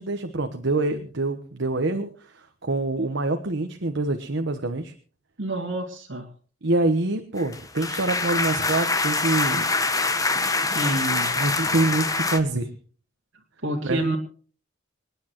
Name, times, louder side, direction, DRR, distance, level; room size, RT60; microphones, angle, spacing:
voice 1, 0.0-4.9 6.6-9.7 11.3-12.7 13.8-14.0, right 2 dB, 65° right, 7 dB, 1.1 m, -26 dB
voice 2, 5.4-6.3 10.6-11.3 13.6-14.2, right 1 dB, 85° right, -1 dB, 2.2 m, -28 dB
sound 1, 7.4-12.4, left 3 dB, 20° left, 1.0 m, -25 dB
27.0 x 9.9 x 3.0 m, 0.41 s
head